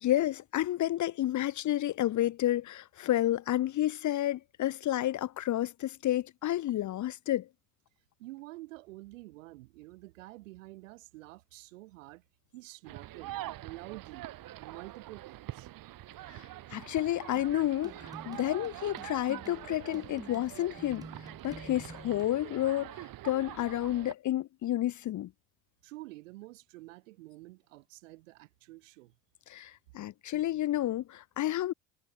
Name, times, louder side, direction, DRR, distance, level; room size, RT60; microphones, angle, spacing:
voice 1, 0.0-7.5 16.3-21.1 21.4-25.3 29.5-31.7, left 13 dB, 50° left, 1.2 m, -30 dB
voice 2, 8.2-12.2 12.5-13.3 13.6-14.3 14.6-15.7 25.8-29.1, right 20 dB, 85° right, 5.7 m, -48 dB
sound 1, 12.8-24.1, right 15 dB, 60° right, 3.5 m, -45 dB
sound 2, 17.4-22.3, right 2 dB, 10° right, 1.7 m, -50 dB
hypercardioid pair, 70°, 37 cm